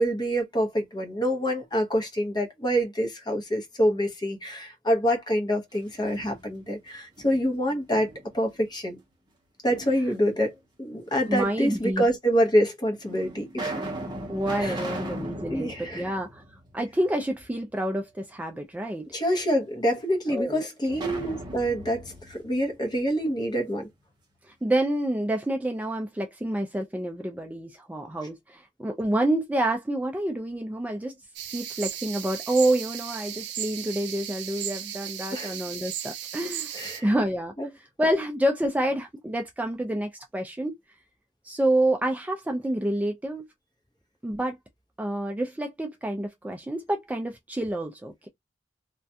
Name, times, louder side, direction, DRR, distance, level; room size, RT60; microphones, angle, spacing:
voice 1, 0.0-9.0 9.6-10.5 10.8-13.9 14.6-14.8 15.5-16.0 19.1-23.9 35.3-35.5 36.7-37.0 37.6-37.7, equal, 25° left, 0.8 m, -26 dB
sound 1, 5.7-6.7 7.2-8.4 9.7-10.5 11.4-11.5 12.3-12.4 13.0-17.1 17.5-17.6 20.9-23.7, right 1 dB, 25° right, 0.7 m, -38 dB
voice 2, 11.3-12.0 14.3-16.4 16.7-19.1 20.3-20.6 24.5-31.1 31.5-40.7 41.4-43.4 44.2-44.6 45.0-48.3, right 1 dB, 10° right, 0.3 m, -28 dB
sound 2, 31.3-37.0, right 11 dB, 75° right, 0.5 m, -36 dB
2.4 x 2.1 x 2.6 m
head